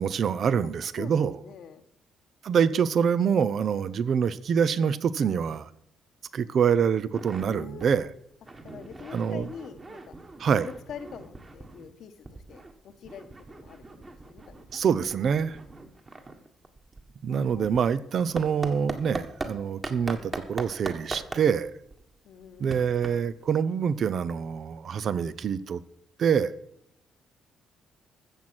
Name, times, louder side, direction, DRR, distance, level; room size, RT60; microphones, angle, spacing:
voice 1, 0.0-1.4 2.4-5.7 6.3-8.1 9.1-9.5 10.4-10.7 14.7-15.6 17.2-21.7 22.6-25.8 26.2-26.5, right 7 dB, 55° right, 0.7 m, -25 dB
voice 2, 1.0-1.8 7.4-8.1 8.6-10.1 10.6-14.6 17.3-17.8 22.2-22.9, left 7 dB, 70° left, 1.2 m, -45 dB
sound 1, 7.1-7.5 7.8-8.0 8.3-11.9 12.2-19.5 19.8-23.4, right 3 dB, 30° right, 1.8 m, -40 dB
14.0 x 7.4 x 6.1 m
cardioid pair, 90°, 0 cm